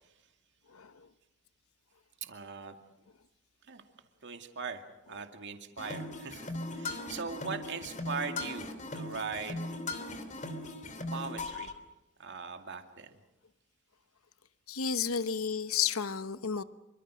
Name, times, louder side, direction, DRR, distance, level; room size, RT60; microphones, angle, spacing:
voice 1, 0.7-1.1 6.9-7.1 14.7-16.6, left 7 dB, 80° left, 13 dB, 1.0 m, -32 dB
voice 2, 2.2-2.7 3.7-3.8 4.2-4.8 5.1-9.6 11.1-11.7 12.2-13.2, right 5 dB, 60° right, 5 dB, 2.3 m, -40 dB
sound 1, 5.8-11.7, left 2 dB, 35° left, 2.8 m, -39 dB
27.0 x 25.0 x 6.4 m, 0.98 s
head